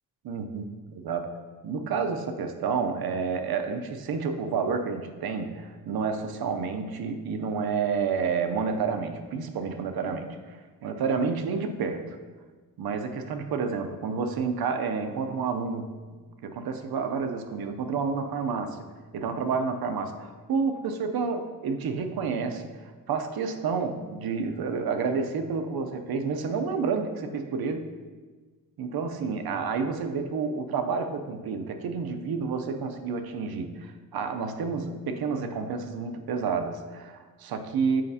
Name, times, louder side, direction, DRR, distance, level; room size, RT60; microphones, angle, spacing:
voice 1, 0.2-1.3 1.6-12.2 12.8-15.9 16.4-18.9 19.1-27.9 28.8-38.0, right 5 dB, 75° right, 7 dB, 0.7 m, -30 dB
7.6 x 4.9 x 2.8 m, 1.4 s
cardioid pair, 110°, 37 cm